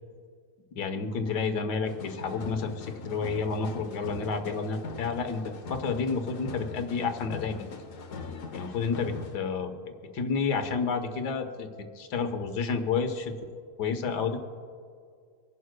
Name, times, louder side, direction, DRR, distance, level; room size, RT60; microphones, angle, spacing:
voice 1, 0.7-7.7 8.5-9.7 10.1-11.7 11.9-13.3 13.8-14.4, left 5 dB, 85° left, 7 dB, 1.6 m, -30 dB
sound 1, 1.8-9.4, left 4 dB, 55° left, 1.2 m, -41 dB
25.5 x 11.0 x 2.2 m, 2.1 s
omnidirectional pair, 1.7 m